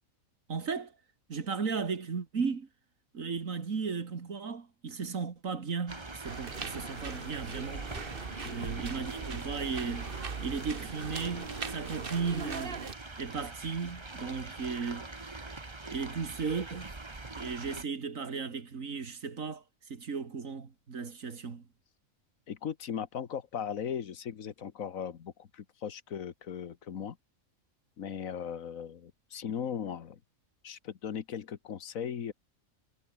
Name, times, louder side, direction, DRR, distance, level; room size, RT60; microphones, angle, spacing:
voice 1, 0.5-0.9 1.3-2.7 3.1-7.9 8.5-12.8 13.2-15.1 15.3-15.5 15.9-16.9 17.4-21.7, right 5 dB, 70° right, 2.4 m, -36 dB
sound 1, 5.9-17.8, right 2 dB, 20° right, 1.4 m, -43 dB
sound 2, 6.3-12.9, right 5 dB, 40° right, 1.6 m, -40 dB
voice 2, 22.5-27.2 28.0-30.2 30.6-32.3, left 8 dB, 75° left, 1.5 m, -38 dB
omnidirectional pair, 1.5 m